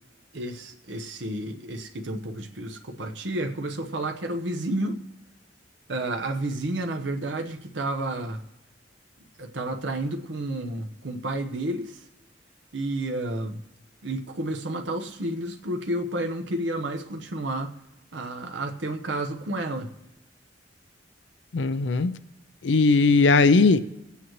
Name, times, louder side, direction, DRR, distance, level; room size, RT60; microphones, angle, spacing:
voice 1, 0.3-5.0 5.9-8.4 9.4-12.0 12.7-13.6 14.0-17.7 18.1-19.9, right 1 dB, 85° right, 1.0 m, -31 dB
voice 2, 21.5-22.1 22.6-23.8, left 3 dB, 75° left, 0.5 m, -18 dB
25.0 x 8.5 x 3.1 m
head